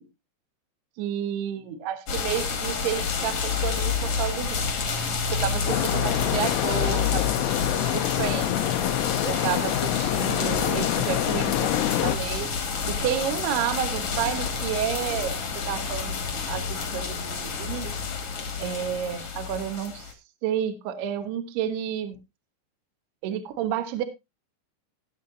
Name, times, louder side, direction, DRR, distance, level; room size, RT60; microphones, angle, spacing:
voice 1, 1.0-4.7 5.3-8.6 9.3-12.5 12.9-15.4 15.7-17.9 18.6-20.1 20.4-22.2 23.2-24.0, right 9 dB, 65° right, 9 dB, 2.8 m, -31 dB
rain slowing down, 2.1-20.1, left 5 dB, 50° left, 1.8 m, -29 dB
sound 1, 5.7-12.2, left 14 dB, 80° left, 3.1 m, -26 dB
19.0 x 7.4 x 2.7 m, 0.22 s
omnidirectional pair, 6.0 m